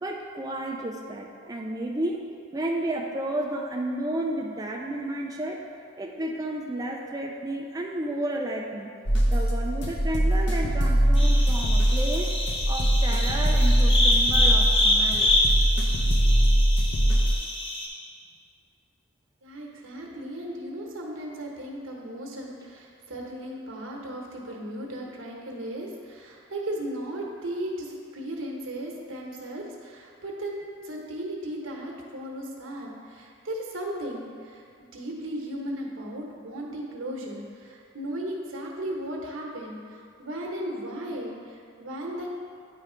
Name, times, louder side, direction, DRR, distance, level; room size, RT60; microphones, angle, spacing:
voice 1, 0.0-2.3 2.5-5.6 6.0-8.9 9.3-12.3 12.7-15.3, right 1 dB, 20° right, -1 dB, 0.4 m, -32 dB
sound 1, 9.1-17.4, right 1 dB, 60° left, 0.8 m, -22 dB
sound 2, 11.2-17.9, left 1 dB, 30° left, 0.9 m, -26 dB
voice 2, 19.4-42.3, right 1 dB, 85° right, -1 dB, 1.1 m, -36 dB
9.4 x 3.3 x 5.0 m, 2.3 s
head